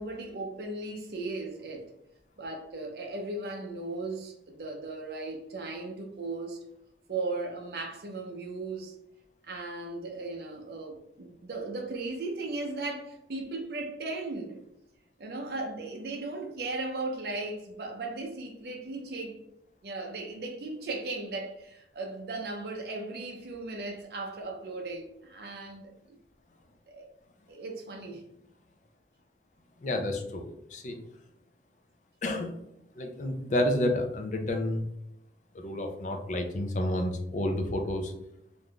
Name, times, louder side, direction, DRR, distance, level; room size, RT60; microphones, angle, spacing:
voice 1, 0.0-1.9 2.4-6.6 7.1-8.9 9.4-14.6 15.2-19.4 19.8-25.9 26.9-27.1 27.5-28.2, right 2 dB, 60° right, 0.5 m, -37 dB
voice 2, 29.8-31.0 32.2-32.6 33.0-34.8 35.5-38.1, left 1 dB, 45° left, 0.4 m, -30 dB
3.4 x 2.5 x 2.2 m
head